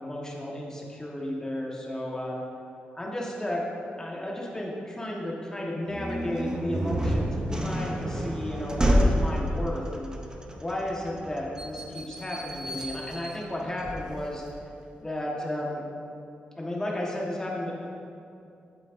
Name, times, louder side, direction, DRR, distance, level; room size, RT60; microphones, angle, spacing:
voice 1, 0.0-2.4 2.9-3.6 4.0-10.1 10.6-14.4 15.0-15.8 16.6-17.9, left 1 dB, 15° left, -3 dB, 1.2 m, -33 dB
sound 1, 5.9-14.6, equal, 20° right, 0.6 m, -29 dB
8.3 x 7.3 x 2.5 m, 2.6 s
cardioid pair, 110°, 4 cm